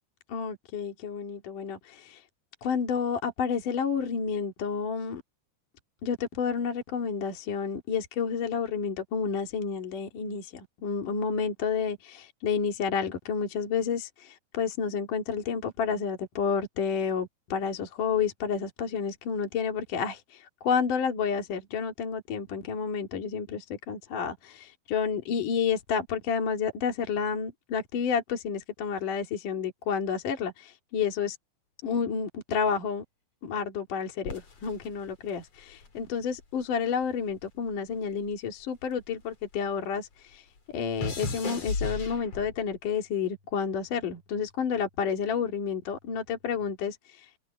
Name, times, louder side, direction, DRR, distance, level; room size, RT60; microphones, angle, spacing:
voice 1, 0.3-2.2 2.6-5.2 6.0-31.4 31.8-33.0 33.4-40.5 40.7-47.3, left 6 dB, 55° left, 4.0 m, -30 dB
sound 1, 34.2-36.7 37.0-39.7 39.9-42.8 43.5-43.9, left 3 dB, 40° left, 4.8 m, -37 dB
omnidirectional pair, 4.8 m